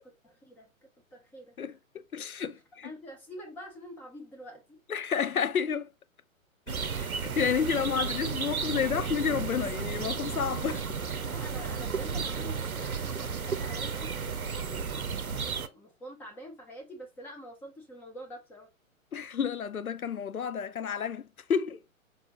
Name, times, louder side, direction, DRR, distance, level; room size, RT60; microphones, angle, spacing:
voice 1, 0.2-0.7 1.1-1.6 2.8-4.8 11.2-18.7, equal, 5° left, 0.9 m, -46 dB
voice 2, 2.1-2.9 4.9-5.9 6.7-11.0 19.1-21.8, left 7 dB, 90° left, 0.5 m, -30 dB
sound 1, 6.7-15.7, right 6 dB, 85° right, 0.7 m, -33 dB
5.0 x 3.3 x 2.8 m
figure-of-eight pair, 120°, 42 cm